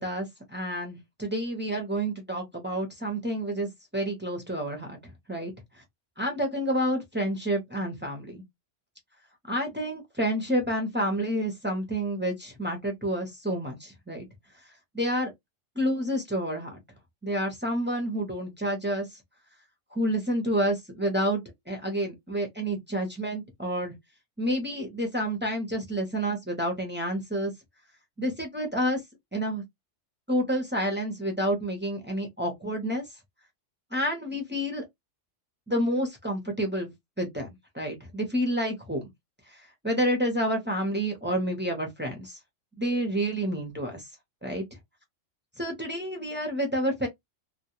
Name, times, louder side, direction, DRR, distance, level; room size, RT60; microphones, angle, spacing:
voice 1, 0.0-5.0 5.3-5.5 6.2-8.4 9.5-14.3 14.9-15.3 15.8-16.8 17.2-19.1 19.9-23.9 24.4-27.5 28.2-29.0 29.3-29.6 30.3-33.0 33.9-34.8 35.7-36.9 37.2-37.5 37.7-39.0 39.8-42.4 42.8-44.0 44.4-44.6 45.6-47.1, equal, 10° right, 0.5 m, -29 dB
2.3 x 2.2 x 2.8 m
omnidirectional pair, 1.3 m